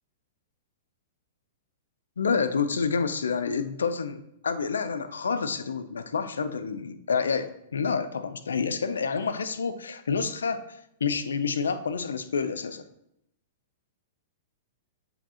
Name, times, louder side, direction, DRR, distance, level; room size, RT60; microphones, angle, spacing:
voice 1, 2.2-10.6 11.0-12.8, left 5 dB, 90° left, 11 dB, 0.5 m, -28 dB
7.7 x 5.0 x 2.9 m, 0.79 s
hypercardioid pair, 125°, 0 cm